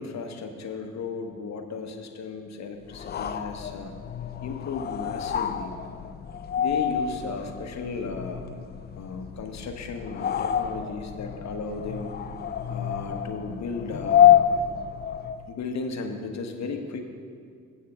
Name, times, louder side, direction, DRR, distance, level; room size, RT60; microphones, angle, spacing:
voice 1, 0.0-3.9 4.4-5.8 6.6-8.5 8.9-12.1 12.7-14.3 15.5-17.1, left 4 dB, 40° left, 5 dB, 1.1 m, -35 dB
sound 1, 2.9-15.5, left 9 dB, 25° left, 0.4 m, -27 dB
16.0 x 7.6 x 2.4 m, 2.1 s
figure-of-eight pair, 40°, 41 cm